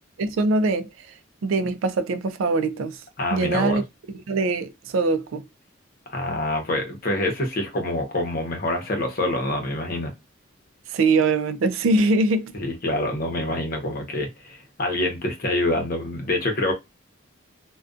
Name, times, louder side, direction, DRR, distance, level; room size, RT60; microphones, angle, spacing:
voice 1, 0.2-0.9 1.4-3.0 3.3-3.8 4.3-5.4 10.9-12.5, right 3 dB, 85° right, 0.4 m, -22 dB
voice 2, 3.2-3.8 6.1-10.1 12.6-16.7, left 1 dB, 45° left, 0.8 m, -26 dB
2.4 x 2.2 x 2.4 m
head